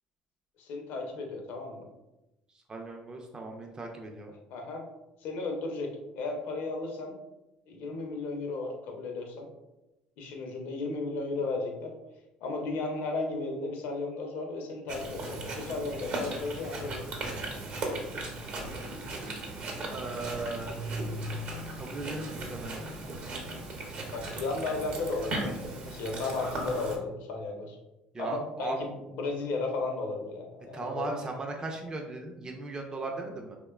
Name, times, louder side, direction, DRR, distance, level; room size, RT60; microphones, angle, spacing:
voice 1, 0.6-1.8 4.5-4.8 5.2-7.1 7.7-9.5 10.2-11.9 12.4-17.1 24.1-27.8 28.2-31.2, left 3 dB, 75° left, 2 dB, 0.5 m, -34 dB
voice 2, 2.7-4.3 19.9-20.7 21.8-22.8 28.1-28.8 30.7-33.6, right 3 dB, 25° right, 2 dB, 0.3 m, -37 dB
Chewing mastication, 14.9-27.0, right 2 dB, 55° right, 0.7 m, -37 dB
2.8 x 2.1 x 2.2 m, 0.96 s
supercardioid pair, 80°, 3 cm